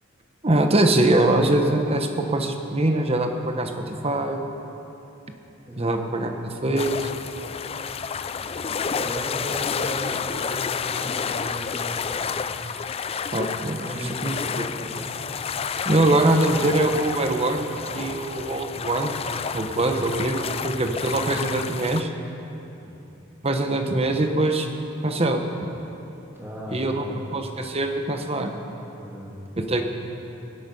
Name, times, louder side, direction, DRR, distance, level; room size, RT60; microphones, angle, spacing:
voice 1, 0.4-4.4 5.8-7.1 13.3-13.9 14.2-14.7 15.8-19.2 19.5-22.1 23.4-24.7 25.0-25.7 26.7-27.0 27.3-28.5 29.6-29.8, right 2 dB, 30° right, 5 dB, 1.1 m, -23 dB
voice 2, 5.6-6.7 8.8-12.6 13.8-15.1 22.8-23.0 26.3-27.3 28.9-29.4, equal, 10° right, -5 dB, 2.9 m, -37 dB
sound 1, 6.8-22.0, left 6 dB, 30° left, 0.4 m, -30 dB
23.5 x 8.5 x 5.5 m, 3.0 s
head